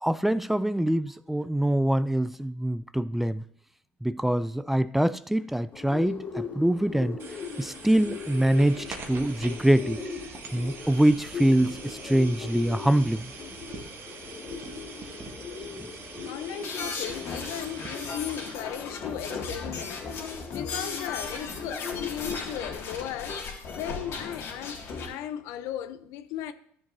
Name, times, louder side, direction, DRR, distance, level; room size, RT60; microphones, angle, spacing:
voice 1, 0.0-3.4 4.0-7.2 7.6-10.0 10.5-13.3 15.8-15.9, right 1 dB, 5° right, 0.4 m, -24 dB
Bird, 5.7-22.7, left 5 dB, 40° left, 1.9 m, -40 dB
sound 1, 7.2-18.5, right 4 dB, 45° right, 1.5 m, -44 dB
voice 2, 16.2-20.1 20.5-26.5, left 10 dB, 75° left, 0.6 m, -37 dB
sound 2, 16.6-25.1, left 4 dB, 55° left, 2.2 m, -36 dB
13.0 x 6.9 x 2.7 m
supercardioid pair, 85°, 5 cm